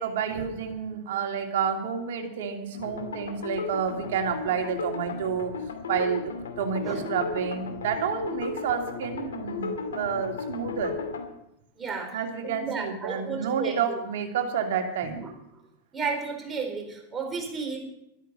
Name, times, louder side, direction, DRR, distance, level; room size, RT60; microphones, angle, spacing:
voice 1, 0.0-5.5 5.9-11.0 12.1-15.2, right 7 dB, 65° right, 3 dB, 2.7 m, -29 dB
sound 1, 2.7-11.2, left 5 dB, 80° left, 2.3 m, -35 dB
voice 2, 11.8-12.2 12.4-14.0 15.0-15.3 15.9-17.8, right 4 dB, 20° right, 2 dB, 4.3 m, -33 dB
13.0 x 13.0 x 5.5 m, 0.83 s
hypercardioid pair, 95°, 0 cm